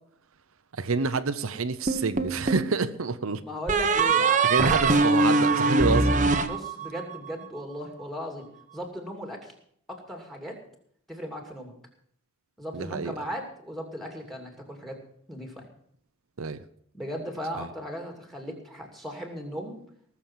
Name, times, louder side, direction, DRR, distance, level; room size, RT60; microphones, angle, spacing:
voice 1, 0.8-3.4 4.4-6.2 12.7-13.1 16.4-16.6 17.6-17.7, right 4 dB, 70° right, 0.7 m, -27 dB
sound 1, 1.9-2.7 3.7-7.2, right 3 dB, 35° right, 0.9 m, -22 dB
voice 2, 3.4-5.1 6.4-8.5 8.7-9.5 9.9-10.6 11.1-11.7 12.6-15.0 15.3-15.7 16.9-19.8, equal, ahead, 2.6 m, -37 dB
19.0 x 7.1 x 7.3 m
head